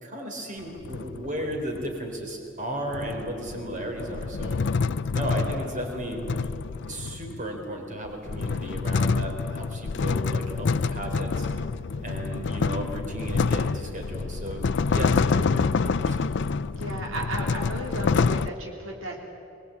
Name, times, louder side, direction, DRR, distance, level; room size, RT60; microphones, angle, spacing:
voice 1, 0.0-4.6 5.1-6.2 6.9-11.5 12.0-16.3, right 1 dB, 40° right, 2 dB, 4.0 m, -34 dB
sound 1, 0.6-1.9 2.9-7.5 8.0-18.5, left 4 dB, 60° left, 0.5 m, -27 dB
voice 2, 11.6-12.0 15.1-15.2 16.7-19.2, right 1 dB, 80° right, 0 dB, 3.3 m, -35 dB
22.0 x 21.5 x 8.6 m, 2.9 s
head